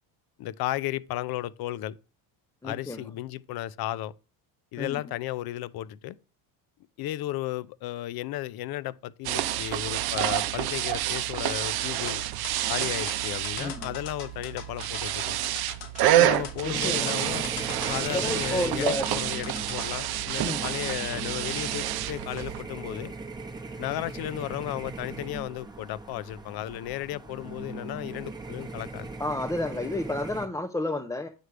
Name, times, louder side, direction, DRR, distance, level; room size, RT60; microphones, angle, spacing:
voice 1, 0.4-2.0 2.6-4.1 4.7-6.2 7.0-12.2 12.7-15.4 16.0-17.5 17.9-23.1 23.8-29.1, left 15 dB, 55° left, 0.5 m, -34 dB
voice 2, 2.6-3.0 4.8-5.0 13.6-13.9 16.1-17.1 18.1-19.1 20.4-20.7 29.2-31.3, left 2 dB, 10° left, 0.5 m, -31 dB
sound 1, 9.2-22.6, right 14 dB, 55° right, 0.6 m, -28 dB
sound 2, 11.9-19.9, left 7 dB, 80° left, 1.7 m, -41 dB
sound 3, 16.7-30.5, right 3 dB, 10° right, 0.9 m, -39 dB
8.2 x 3.2 x 4.9 m
supercardioid pair, 100°, 45 cm